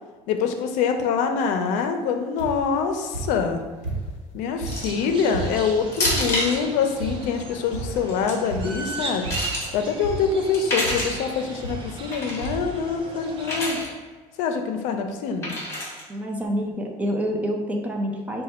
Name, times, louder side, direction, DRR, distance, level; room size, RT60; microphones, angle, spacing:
voice 1, 0.3-3.6 4.3-9.3 9.7-13.8 14.4-15.6, left 6 dB, 75° left, 6 dB, 0.5 m, -25 dB
sound 1, 2.4-2.8 3.1-4.3 4.6-6.5 7.0-7.4 7.7-8.1 8.5-8.9 9.2-9.7 10.0-10.5 10.8-11.1 11.6-12.1 12.4-12.8 13.5-13.6 13.8-13.9, right 2 dB, 70° right, 1.0 m, -33 dB
sound 2, 4.7-5.0 5.9-6.6 8.0-8.3 8.9-9.7 10.5-11.2 12.1-12.5 13.4-13.9 15.4-16.0, left 1 dB, 20° left, 1.2 m, -27 dB
sound 3, 4.7-13.8, right 3 dB, 45° right, 0.7 m, -38 dB
voice 2, 16.1-18.4, equal, 10° right, 2 dB, 0.4 m, -27 dB
5.1 x 2.2 x 4.2 m, 1.4 s
cardioid pair, 160°, 13 cm